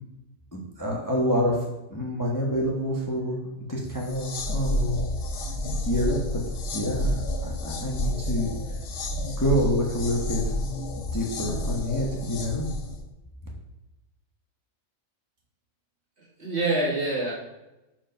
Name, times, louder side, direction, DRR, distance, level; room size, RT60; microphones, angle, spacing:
voice 1, 0.5-1.6 1.9-3.4 3.7-5.0 5.8-6.2 6.7-7.1 7.4-8.5 9.4-10.4 11.0-12.6, equal, 15° left, -2 dB, 1.0 m, -27 dB
sound 1, 3.9-13.0, left 1 dB, 55° left, 1.0 m, -30 dB
voice 2, 16.2-17.3, right 2 dB, 50° right, -5 dB, 2.2 m, -26 dB
5.8 x 4.8 x 5.2 m, 0.98 s
omnidirectional pair, 1.4 m